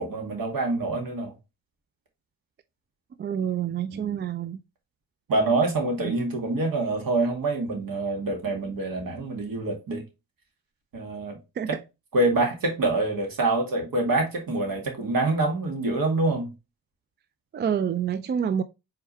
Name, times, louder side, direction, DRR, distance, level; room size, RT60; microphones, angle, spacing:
voice 1, 0.0-1.3 3.9-4.2 5.3-10.0 10.9-11.4 11.7-11.8 12.1-16.5, right 2 dB, 55° right, 2.1 m, -26 dB
voice 2, 3.2-4.6 11.6-11.7 17.5-18.6, right 8 dB, 30° right, 0.3 m, -27 dB
4.6 x 3.6 x 3.1 m
supercardioid pair, 60°, 40 cm